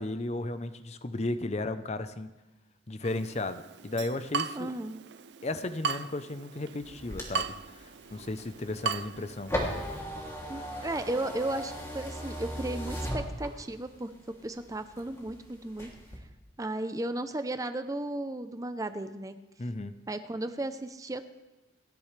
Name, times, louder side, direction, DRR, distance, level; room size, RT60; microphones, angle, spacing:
voice 1, 0.0-2.3 2.9-4.7 5.4-9.5 19.6-19.9, left 2 dB, 40° left, 11 dB, 0.7 m, -34 dB
Water tap faucet / Drip, 3.0-10.0, right 5 dB, 70° right, 0.5 m, -38 dB
voice 2, 4.5-5.0 10.5-14.1 14.4-15.9 16.6-19.4 20.1-21.2, right 1 dB, 20° right, 9 dB, 0.6 m, -35 dB
sound 1, 6.8-13.9 14.3-15.3 15.7-16.2, equal, 15° left, 2.8 m, -37 dB
28.5 x 10.5 x 3.3 m, 1.1 s
head